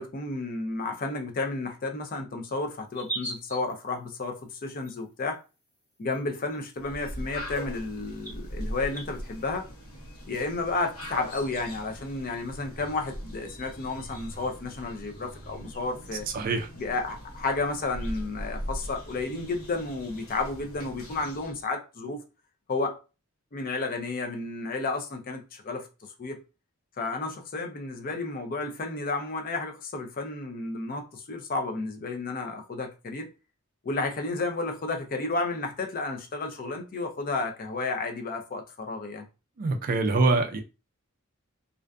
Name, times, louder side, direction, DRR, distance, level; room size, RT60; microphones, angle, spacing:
voice 1, 0.0-5.4 6.0-9.7 10.2-16.3 16.8-22.2 22.7-23.0 23.5-25.9 26.2-26.4 27.0-33.3 33.8-39.3, left 3 dB, 40° left, 0.4 m, -32 dB
sound 1, 2.9-3.7 4.8-4.9 6.1-6.2 6.4-6.6 7.5-7.6 8.2-8.3 8.9-9.0, right 2 dB, 10° left, 1.0 m, -36 dB
sound 2, 6.8-21.7, equal, 75° left, 0.9 m, -40 dB
voice 2, 16.3-16.7 39.6-40.6, right 3 dB, 40° right, 0.3 m, -24 dB
2.5 x 2.3 x 2.2 m
head